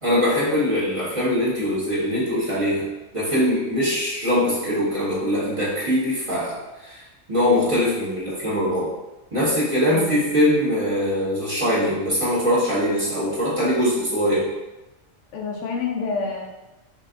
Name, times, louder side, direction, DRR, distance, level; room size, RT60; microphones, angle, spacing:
voice 1, 0.0-2.9 3.1-7.0 7.3-8.9 9.3-14.5, equal, 25° right, -9 dB, 1.4 m, -22 dB
voice 2, 9.9-10.2 15.3-16.4, left 4 dB, 75° left, 0 dB, 0.9 m, -28 dB
4.7 x 3.3 x 2.5 m, 1.0 s
omnidirectional pair, 1.3 m